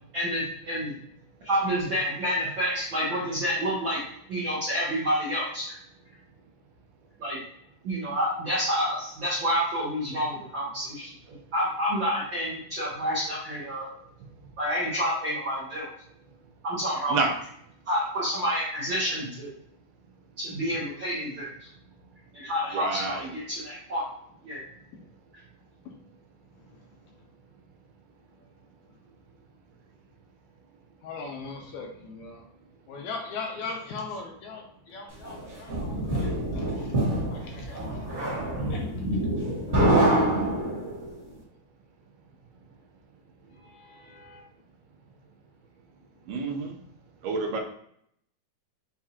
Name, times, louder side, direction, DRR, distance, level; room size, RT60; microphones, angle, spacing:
voice 1, 0.1-0.9 1.4-4.0 4.3-5.8 7.2-7.4 7.8-11.1 11.5-13.9 14.6-15.9 16.6-17.2 17.9-19.5 20.4-21.7 22.3-24.0 24.4-24.6, equal, 70° right, -8 dB, 1.1 m, -28 dB
voice 2, 22.7-23.2 37.3-37.7 46.3-46.8 47.2-47.6, right 4 dB, 90° right, 1 dB, 2.3 m, -29 dB
voice 3, 31.0-32.4 32.9-36.9 37.3-38.3 38.7-39.1 39.4-39.7 43.6-44.4, left 4 dB, 80° left, 1 dB, 1.8 m, -40 dB
sound 1, 35.2-41.1, right 1 dB, 40° right, 1.0 m, -26 dB
6.5 x 2.4 x 2.9 m, 0.69 s
omnidirectional pair, 3.7 m